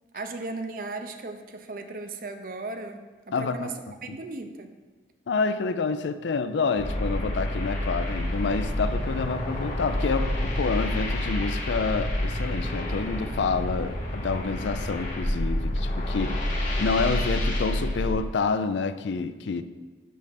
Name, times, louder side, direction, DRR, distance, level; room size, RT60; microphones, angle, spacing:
voice 1, 0.1-4.8, right 3 dB, 50° right, 7 dB, 0.6 m, -36 dB
voice 2, 3.3-3.7 4.1-4.2 5.3-16.4 16.8-19.6, left 4 dB, 80° left, 11 dB, 0.4 m, -28 dB
sound 1, 6.8-18.2, left 1 dB, 45° left, 1.2 m, -28 dB
6.2 x 5.4 x 5.8 m, 1.3 s
head